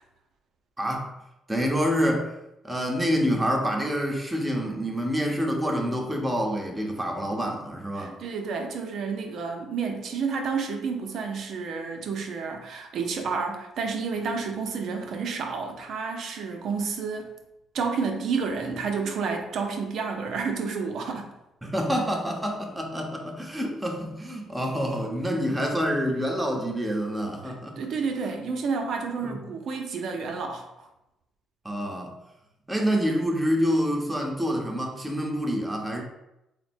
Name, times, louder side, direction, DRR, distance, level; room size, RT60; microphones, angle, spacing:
voice 1, 0.8-1.1 1.5-2.3 2.6-8.1 21.6-27.8 29.2-29.3 31.6-32.1 32.7-36.0, equal, 10° right, 1 dB, 0.9 m, -27 dB
voice 2, 8.0-17.3 17.7-21.3 27.5-30.9, right 5 dB, 65° right, 3 dB, 0.6 m, -30 dB
3.9 x 2.1 x 4.3 m, 0.90 s
supercardioid pair, 70°, 0 cm